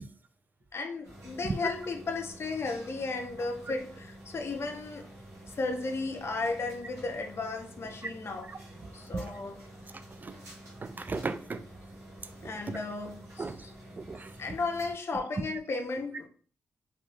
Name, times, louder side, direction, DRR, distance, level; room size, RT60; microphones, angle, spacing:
voice 1, 0.7-5.0 5.6-8.5 8.9-9.6 12.4-13.5 14.4-16.3, left 3 dB, 55° left, 0.5 m, -34 dB
sound 1, 1.0-14.9, right 1 dB, 90° right, 1.1 m, -49 dB
voice 2, 10.8-11.7 12.4-12.8 13.4-13.6 14.0-14.3, right 3 dB, 35° right, 0.3 m, -36 dB
3.0 x 2.4 x 2.3 m
supercardioid pair, 45°, 5 cm